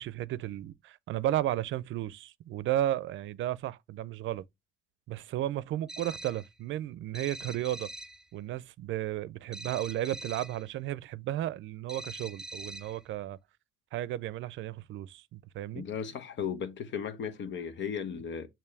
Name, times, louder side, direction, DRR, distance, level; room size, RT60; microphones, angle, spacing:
voice 1, 0.0-4.4 5.1-7.9 8.3-13.4 13.9-15.8, right 13 dB, 75° right, 0.5 m, -34 dB
sound 1, 5.9-6.5 7.1-8.2 9.5-10.6 11.9-13.0, right 1 dB, 5° right, 0.5 m, -43 dB
voice 2, 15.7-18.5, left 7 dB, 70° left, 1.0 m, -36 dB
6.8 x 3.1 x 4.6 m
cardioid pair, 90°, 20 cm